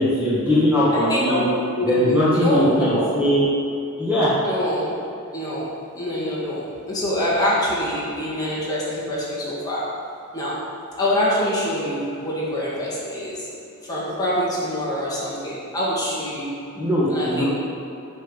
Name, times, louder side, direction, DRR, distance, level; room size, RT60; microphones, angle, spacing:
voice 1, 0.0-1.5 1.8-3.4 4.0-4.4 16.7-17.5, equal, 10° right, -10 dB, 1.4 m, -20 dB
voice 2, 0.9-3.1 4.4-4.9 5.3-9.9 10.3-10.6 11.0-13.5 13.8-16.6 17.1-17.5, equal, 15° left, -8 dB, 2.1 m, -25 dB
7.4 x 5.4 x 7.2 m, 2.8 s
head